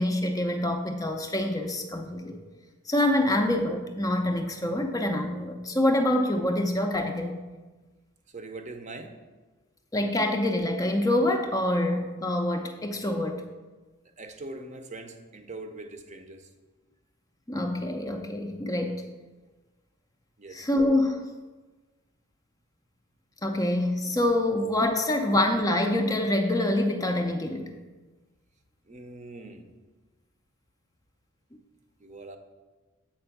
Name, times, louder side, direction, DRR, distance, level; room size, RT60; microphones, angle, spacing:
voice 1, 0.0-2.4 2.9-7.4 9.9-13.4 17.5-19.0 20.5-21.3 23.4-27.7, left 1 dB, 15° left, 4 dB, 0.4 m, -26 dB
voice 2, 8.3-9.2 14.2-16.5 20.4-20.6 24.5-24.6 28.9-29.7 32.0-32.4, right 2 dB, 35° right, 7 dB, 0.6 m, -42 dB
7.8 x 4.3 x 5.8 m, 1.3 s
head